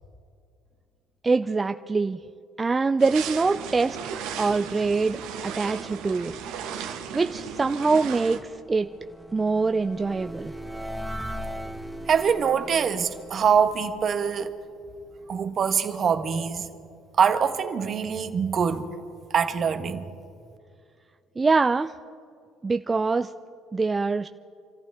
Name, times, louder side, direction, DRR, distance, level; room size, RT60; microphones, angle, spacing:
voice 1, 1.2-2.2 2.6-4.0 4.4-6.3 7.1-8.9 9.3-10.5 21.4-22.0 22.6-23.3 23.7-24.3, right 4 dB, 25° right, 0.5 m, -24 dB
sound 1, 3.0-8.4, right 7 dB, 80° right, 1.5 m, -36 dB
sound 2, 7.9-14.8, equal, 5° left, 1.5 m, -39 dB
voice 2, 12.1-14.5 15.3-16.7 17.2-18.8 19.3-20.0, right 7 dB, 50° right, 1.4 m, -24 dB
27.0 x 14.5 x 3.7 m
supercardioid pair, 70°, 0 cm